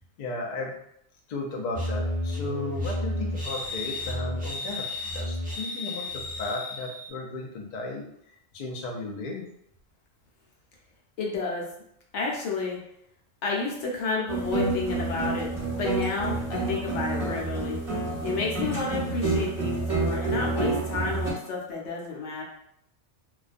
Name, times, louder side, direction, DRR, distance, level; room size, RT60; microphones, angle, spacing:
voice 1, 0.2-0.8 1.3-9.5, left 2 dB, 90° left, 0 dB, 0.3 m, -35 dB
sound 1, 1.7-7.1, left 1 dB, 15° right, 0.3 m, -32 dB
voice 2, 11.2-11.7 12.1-12.8 13.4-15.5 15.7-17.8 18.2-22.4, left 4 dB, 70° left, -2 dB, 0.9 m, -30 dB
sound 2, 14.3-21.3, right 3 dB, 35° right, 0.8 m, -28 dB
2.3 x 2.1 x 2.4 m, 0.74 s
omnidirectional pair, 1.3 m